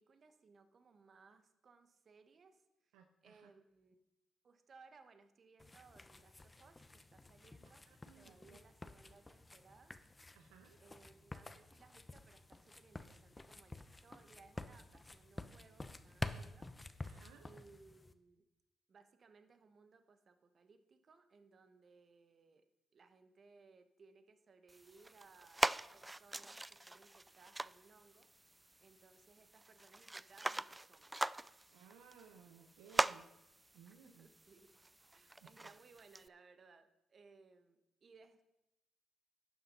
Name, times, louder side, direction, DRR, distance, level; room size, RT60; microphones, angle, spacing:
voice 1, 0.0-3.0 3.2-4.0 4.4-7.9 8.1-10.0 10.8-16.7 17.4-18.4 18.9-22.6 22.9-31.3 33.9-34.8 35.1-38.4, right 4 dB, 50° right, 9 dB, 1.2 m, -64 dB
voice 2, 2.9-3.5 7.9-8.6 10.3-10.8 17.0-17.5 31.7-33.3 33.7-34.3 35.4-35.7, right 7 dB, 85° right, 5 dB, 0.7 m, -61 dB
sound 1, 5.6-18.1, left 2 dB, 25° left, 0.9 m, -50 dB
sound 2, 24.7-36.3, right 2 dB, 15° right, 0.3 m, -42 dB
11.5 x 7.3 x 5.4 m, 0.90 s
supercardioid pair, 50°, 0 cm